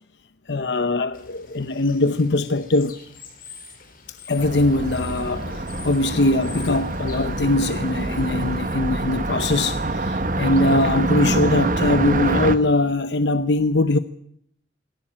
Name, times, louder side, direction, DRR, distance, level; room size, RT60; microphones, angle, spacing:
voice 1, 0.5-3.0 4.1-14.0, left 2 dB, 75° left, 0.8 m, -21 dB
Bird / Water, 1.1-8.6, left 6 dB, 50° left, 4.8 m, -46 dB
Car passing by, 4.4-12.5, right 2 dB, 45° right, 1.3 m, -25 dB
19.0 x 18.0 x 8.8 m
head